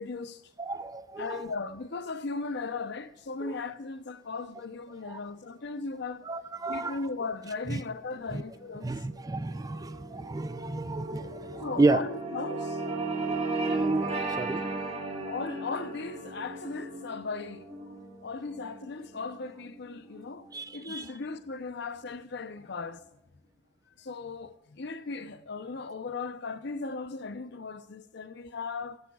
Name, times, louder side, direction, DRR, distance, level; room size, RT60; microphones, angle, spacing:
voice 1, 0.0-0.4 1.2-6.3 6.7-8.9 11.6-12.8 15.3-18.0 18.2-20.5 20.7-23.0 24.0-29.0, left 4 dB, 65° left, 0.7 m, -37 dB
voice 2, 0.6-1.4 3.4-3.5 5.1-5.2 6.3-6.9 7.7-7.8 8.8-12.0 12.9-13.5 14.4-14.7 20.5-21.0, right 3 dB, 20° right, 0.4 m, -31 dB
sound 1, 8.0-20.5, right 3 dB, 35° right, 1.7 m, -35 dB
14.5 x 13.5 x 2.4 m
head